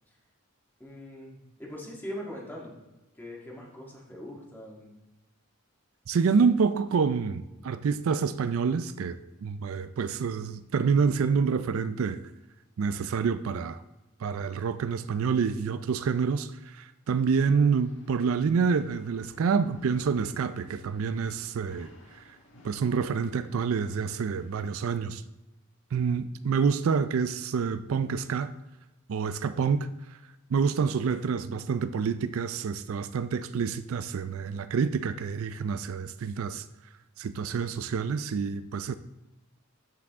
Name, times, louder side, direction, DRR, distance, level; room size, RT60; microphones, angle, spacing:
voice 1, 0.8-2.7 3.2-5.0, equal, 10° left, 1.7 m, -41 dB
voice 2, 6.1-12.2 12.8-13.8 14.2-22.2 22.6-25.2 25.9-28.5 29.1-29.9 30.5-36.6 37.2-38.9, right 5 dB, 70° right, 0.4 m, -27 dB
sound 1, 17.2-24.7, left 1 dB, 60° left, 1.7 m, -56 dB
13.5 x 4.9 x 3.5 m
head